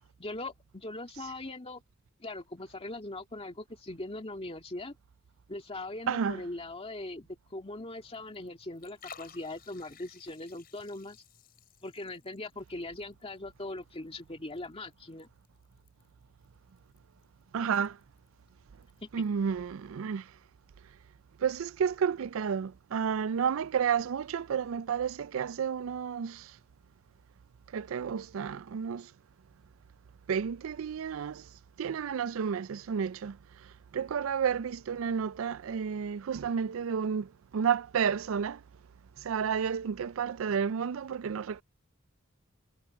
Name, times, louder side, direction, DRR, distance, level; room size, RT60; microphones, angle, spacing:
voice 1, 0.2-1.8 2.2-5.0 5.5-11.2 11.8-15.3 19.0-19.1, left 2 dB, 30° left, 2.1 m, -40 dB
voice 2, 6.1-6.4 17.5-18.0 19.1-20.2 21.4-26.5 27.7-29.1 30.3-31.4 31.8-33.4 33.9-38.6 39.2-41.6, right 7 dB, 75° right, 0.4 m, -31 dB
Liquid, 7.9-19.3, left 7 dB, 45° left, 4.7 m, -58 dB
head